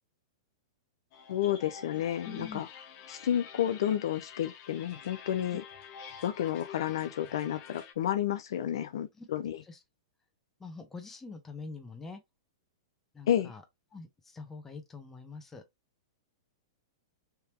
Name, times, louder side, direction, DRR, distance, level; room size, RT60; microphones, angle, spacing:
sound 1, 1.1-7.9, left 7 dB, 45° left, 0.9 m, -48 dB
voice 1, 1.3-2.7 3.1-5.6 6.2-9.6 13.3-13.5, left 11 dB, 70° left, 0.5 m, -31 dB
voice 2, 2.2-2.6 5.5-5.6 9.2-9.3 9.7-9.8 10.6-12.2 13.1-13.6 13.9-15.6, left 4 dB, 10° left, 1.0 m, -44 dB
3.5 x 2.8 x 2.9 m
hypercardioid pair, 125°, 3 cm